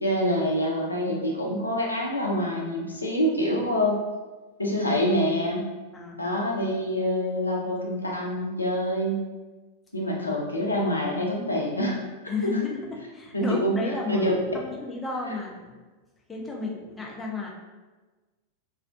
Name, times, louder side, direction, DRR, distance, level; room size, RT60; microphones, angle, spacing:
voice 1, 0.0-4.0 4.6-5.7 6.2-9.2 9.9-12.0 13.3-13.8 14.1-14.3 15.3-15.4, equal, 80° left, -1 dB, 0.5 m, -26 dB
voice 2, 12.3-14.2 14.5-15.8 16.3-17.5, left 4 dB, 10° left, -2 dB, 0.5 m, -32 dB
2.5 x 2.1 x 2.4 m, 1.2 s
figure-of-eight pair, 90°, 0 cm